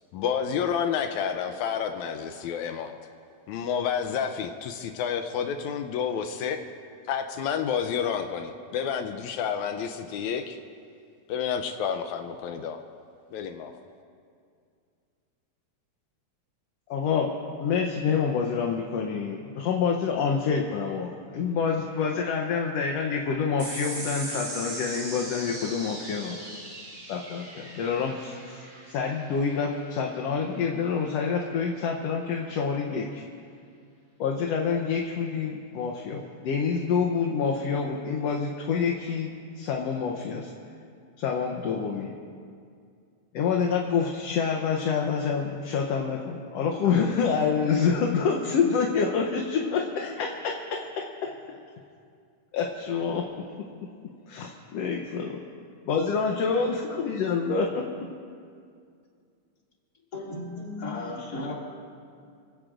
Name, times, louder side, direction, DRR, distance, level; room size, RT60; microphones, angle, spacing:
voice 1, 0.1-2.9 3.5-6.6 7.1-10.6 11.3-12.8 13.3-13.7, left 7 dB, 85° left, 6 dB, 2.0 m, -29 dB
voice 2, 16.9-26.4 27.1-33.2 34.2-40.5 41.2-42.1 43.3-51.4 52.5-53.3 53.6-53.9 54.3-55.4 55.9-57.8, left 6 dB, 70° left, 1 dB, 1.8 m, -27 dB
sound 1, 23.6-30.4, right 2 dB, 60° right, 5.4 m, -39 dB
voice 3, 60.1-61.5, left 2 dB, 35° left, -4 dB, 2.8 m, -35 dB
25.5 x 16.5 x 2.6 m, 2.3 s
omnidirectional pair, 3.3 m